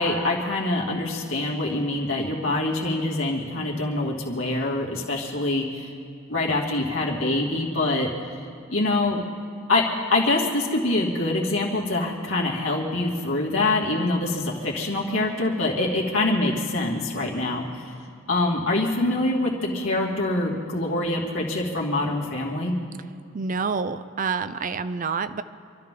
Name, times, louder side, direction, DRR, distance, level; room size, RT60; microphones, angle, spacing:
voice 1, 0.0-5.9 6.3-8.1 8.7-9.2 9.7-9.8 10.1-17.9 18.3-22.7, left 2 dB, 70° left, -3 dB, 2.6 m, -25 dB
voice 2, 23.3-25.4, right 5 dB, 40° right, 13 dB, 0.5 m, -28 dB
27.0 x 13.0 x 3.8 m, 2.5 s
head